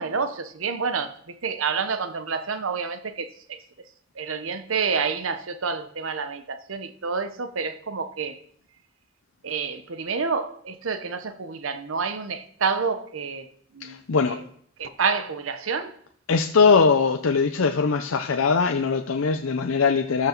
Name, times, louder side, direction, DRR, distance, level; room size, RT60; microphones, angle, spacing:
voice 1, 0.0-3.6 4.2-8.4 9.4-13.5 13.7-14.0 14.3-14.4 14.8-16.0, right 5 dB, 75° right, 0.9 m, -28 dB
voice 2, 13.8-14.4 16.3-20.3, left 5 dB, 80° left, 0.6 m, -21 dB
13.5 x 5.9 x 4.5 m
head